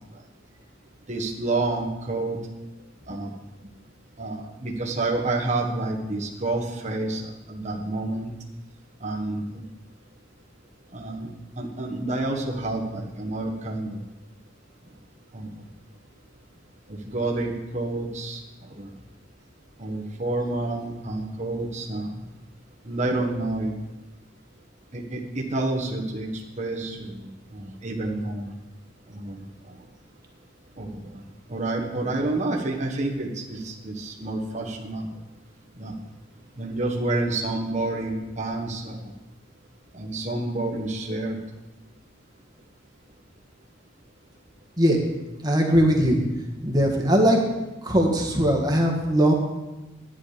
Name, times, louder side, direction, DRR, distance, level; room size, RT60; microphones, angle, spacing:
voice 1, 1.1-2.4 3.1-3.4 4.2-8.3 9.0-9.6 10.9-11.3 11.6-14.0 15.3-15.5 16.9-18.4 18.7-18.9 19.8-22.2 22.8-23.7 24.9-28.5 29.1-29.8 30.8-31.2 31.5-35.1 35.7-36.0 36.6-39.1 39.9-41.4, right 2 dB, 35° right, -1 dB, 1.4 m, -29 dB
voice 2, 45.4-46.2 46.6-47.4 47.8-49.3, equal, 20° right, 1 dB, 1.6 m, -20 dB
11.0 x 9.7 x 5.1 m, 1.0 s
head